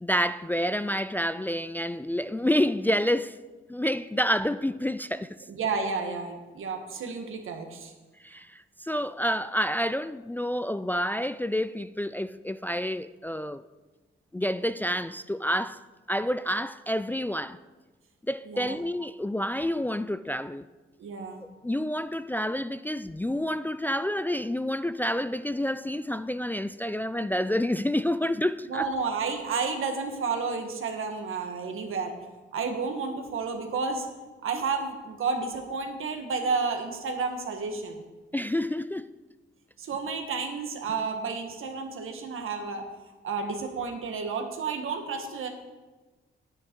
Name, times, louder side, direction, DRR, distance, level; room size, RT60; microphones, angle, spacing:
voice 1, 0.0-3.4 3.7-5.3 8.2-13.6 14.3-15.8 16.1-17.6 18.3-20.7 21.4-28.9 38.3-39.1, equal, 10° left, 0.3 m, -28 dB
voice 2, 5.5-7.9 18.4-18.8 21.0-21.4 28.7-32.1 32.5-34.1 34.4-38.0 39.8-42.8 43.2-45.5, right 4 dB, 75° right, 1.6 m, -31 dB
9.7 x 9.5 x 4.6 m
cardioid pair, 70°, 21 cm